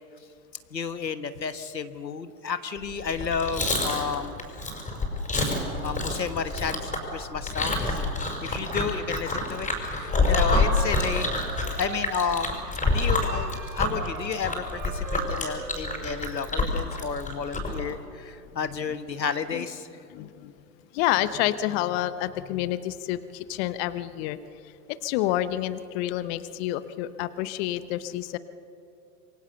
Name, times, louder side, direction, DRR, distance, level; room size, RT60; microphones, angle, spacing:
voice 1, 0.7-4.4 5.8-7.9 8.4-9.7 10.0-11.3 11.6-19.9, left 6 dB, 85° left, 11 dB, 1.4 m, -32 dB
Chewing mastication, 3.0-17.8, left 2 dB, 15° left, 5.4 m, -27 dB
Wind instrument woodwind instrument, 9.9-12.7 13.1-16.2, right 3 dB, 40° right, 5.0 m, -40 dB
voice 2, 20.1-20.5 20.9-24.4 25.0-28.4, left 13 dB, 40° left, 14 dB, 1.0 m, -28 dB
26.5 x 23.0 x 6.9 m, 2.6 s
figure-of-eight pair, 100°, 49 cm